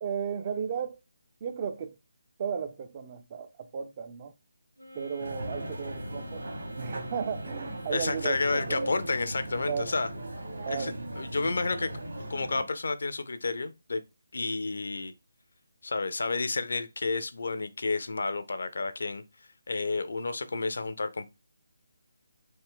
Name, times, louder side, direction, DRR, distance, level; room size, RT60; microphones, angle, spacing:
voice 1, 0.0-1.0 1.4-2.0 2.4-4.3 4.9-6.5 6.8-8.9 9.7-9.9 10.6-10.9, right 7 dB, 30° right, 0.3 m, -34 dB
Wind instrument woodwind instrument, 4.8-8.8, left 1 dB, 80° right, 1.4 m, -48 dB
sound 1, 5.2-12.6, right 1 dB, 60° right, 1.3 m, -38 dB
voice 2, 7.9-10.1 10.7-12.0 12.3-14.0 14.3-15.1 15.8-19.2 19.7-21.3, left 3 dB, 55° left, 0.4 m, -31 dB
3.2 x 2.1 x 3.5 m
figure-of-eight pair, 150°, 0 cm